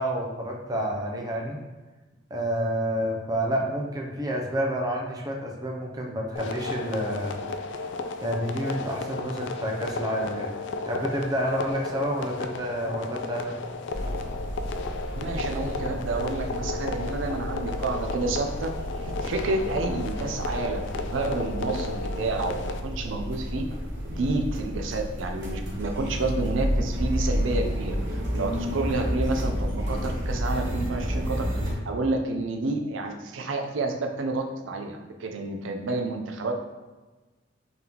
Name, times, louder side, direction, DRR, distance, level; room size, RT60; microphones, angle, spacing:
voice 1, 0.0-1.6 2.3-7.3 8.2-10.5 10.8-13.6, equal, 20° right, 0 dB, 0.5 m, -29 dB
sound 1, 6.4-22.8, left 3 dB, 65° left, 0.3 m, -34 dB
sound 2, 13.9-31.8, equal, 65° right, 1.0 m, -31 dB
voice 2, 15.1-18.7 19.0-23.7 24.0-36.5, right 3 dB, 85° right, 4 dB, 0.5 m, -30 dB
3.8 x 3.5 x 2.9 m, 1.2 s
head